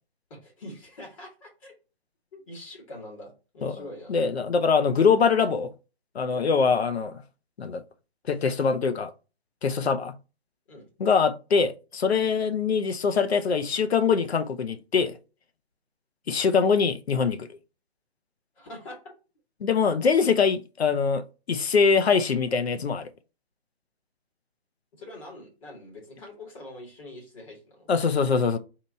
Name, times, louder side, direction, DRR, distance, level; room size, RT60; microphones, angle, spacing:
voice 1, 0.3-1.7 2.3-4.1 6.3-6.5 10.7-10.8 18.6-19.1 25.0-27.9, left 1 dB, 30° left, 2.4 m, -44 dB
voice 2, 4.1-5.7 6.1-7.2 7.6-7.8 8.3-9.1 9.6-10.1 11.0-15.2 16.3-17.5 19.6-23.1 27.9-28.6, left 5 dB, 85° left, 0.8 m, -23 dB
4.4 x 2.9 x 4.2 m
hypercardioid pair, 155°, 31 cm